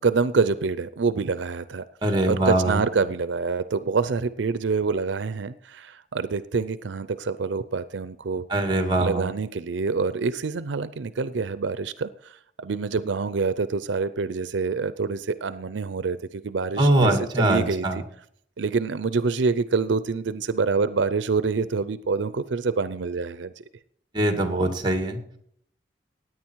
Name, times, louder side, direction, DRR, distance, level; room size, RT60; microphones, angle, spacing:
voice 1, 0.0-1.8 2.3-8.5 9.0-18.0 18.6-23.5, right 4 dB, 80° right, 14 dB, 0.5 m, -26 dB
voice 2, 2.0-2.8 8.5-9.2 16.8-18.0 24.1-25.2, right 1 dB, 25° right, 5 dB, 2.1 m, -22 dB
17.0 x 9.4 x 4.6 m, 0.66 s
head